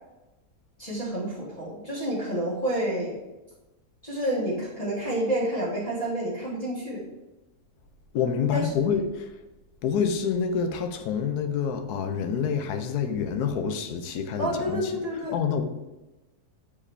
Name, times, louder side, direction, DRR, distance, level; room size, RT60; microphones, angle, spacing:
voice 1, 0.8-3.2 4.0-7.0 8.5-8.7 14.4-15.3, right 1 dB, 25° left, 1.6 m, -29 dB
voice 2, 8.1-9.3 9.8-14.9 15.3-15.6, left 7 dB, 90° left, 1.2 m, -27 dB
7.0 x 4.9 x 3.3 m
omnidirectional pair, 1.6 m